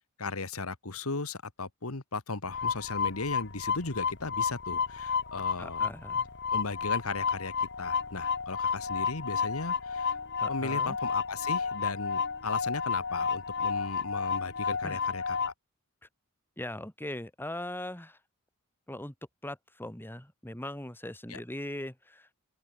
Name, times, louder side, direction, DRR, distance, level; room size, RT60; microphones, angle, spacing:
voice 1, 0.2-5.8 6.5-7.5 7.8-10.2 10.5-15.5 21.3-21.4, left 3 dB, 90° left, 1.8 m, -36 dB
sound 1, 2.5-15.5, left 5 dB, 55° left, 2.5 m, -31 dB
voice 2, 5.6-6.3 10.4-11.0 14.8-15.0 16.6-18.2 18.9-19.1 19.4-22.3, left 1 dB, 10° left, 2.4 m, -40 dB
open air
head